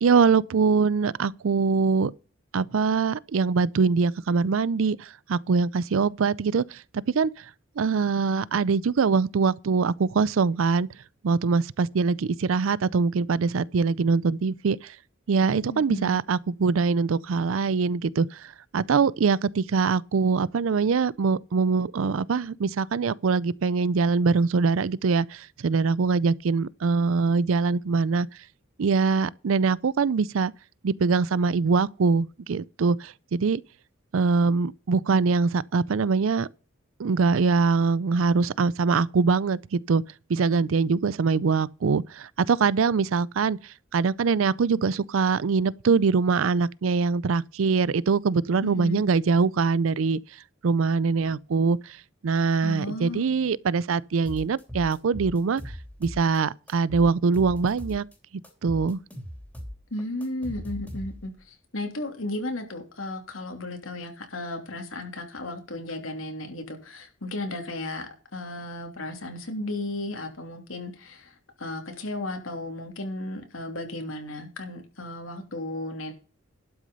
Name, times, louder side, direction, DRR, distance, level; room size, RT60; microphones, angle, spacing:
voice 1, 0.0-2.1 2.5-6.8 7.2-7.3 7.8-10.9 11.2-14.9 15.3-28.3 28.8-30.5 30.8-33.6 34.1-36.5 37.0-40.0 40.3-43.6 43.9-50.2 50.6-51.8 52.2-55.6 56.0-58.0 58.6-59.0, right 4 dB, 80° right, 0.5 m, -23 dB
voice 2, 15.7-16.2 48.6-49.1 52.6-53.4 59.9-76.1, left 1 dB, 85° left, 3.0 m, -34 dB
sound 1, 54.3-56.4 56.7-58.2 58.4-61.4, equal, 5° left, 2.9 m, -39 dB
12.0 x 6.1 x 5.5 m
head